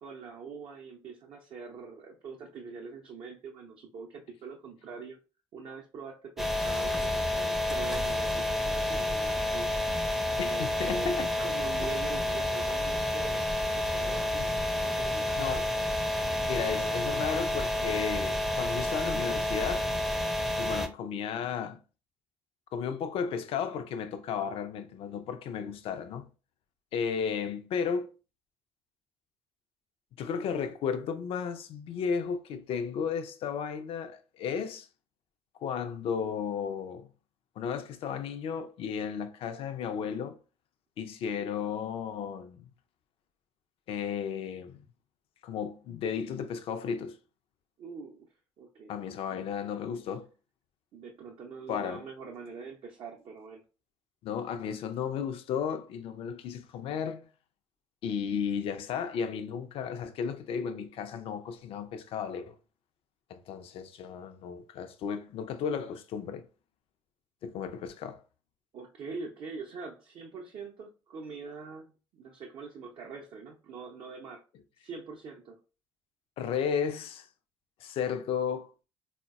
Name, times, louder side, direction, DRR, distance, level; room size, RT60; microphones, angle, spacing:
voice 1, 0.0-5.2 5.5-9.7 10.4-13.4 13.7-14.4 14.8-15.6 47.8-48.3 48.6-48.9 49.3-49.4 50.9-53.6 68.7-74.4 74.8-75.6, right 5 dB, 50° right, 0.5 m, -44 dB
sound 1, 6.4-20.9, left 1 dB, 5° right, 0.5 m, -30 dB
voice 2, 10.4-11.3 14.4-14.5 15.4-15.7 16.4-19.9 20.6-21.8 22.7-26.3 26.9-28.1 30.2-34.9 35.6-37.1 37.6-40.4 41.0-42.7 43.9-44.8 45.4-47.2 48.9-50.3 51.7-52.0 54.2-57.3 58.0-62.5 63.3-66.4 67.4-68.2 76.4-77.3 77.8-78.7, left 7 dB, 50° left, 0.4 m, -34 dB
3.7 x 2.1 x 2.3 m
figure-of-eight pair, 50°, 12 cm